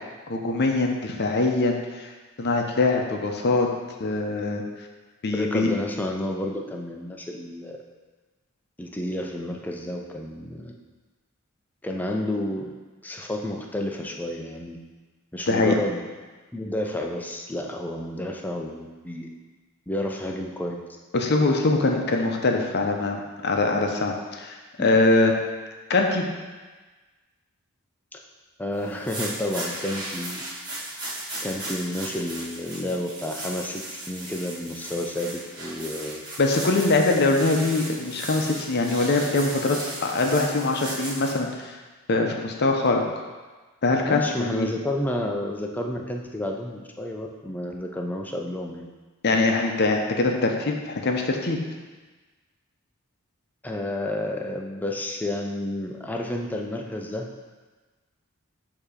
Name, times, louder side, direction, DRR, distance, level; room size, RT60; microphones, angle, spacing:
voice 1, 0.3-2.1 2.4-3.7 4.0-4.6 5.2-5.7 15.5-15.7 21.1-25.3 25.9-26.3 36.4-41.7 42.1-43.0 43.8-44.7 49.2-51.6, left 3 dB, 50° left, 2 dB, 0.6 m, -23 dB
voice 2, 5.3-7.8 8.8-10.7 11.8-12.7 13.0-14.8 15.3-16.0 16.5-19.3 19.9-20.8 24.8-25.0 28.6-30.4 31.4-36.2 44.0-48.8 53.6-57.3, left 1 dB, 10° left, 1 dB, 0.5 m, -30 dB
sound 1, 28.8-41.4, right 1 dB, 20° right, 1.4 m, -36 dB
6.9 x 2.9 x 4.9 m, 1.3 s
head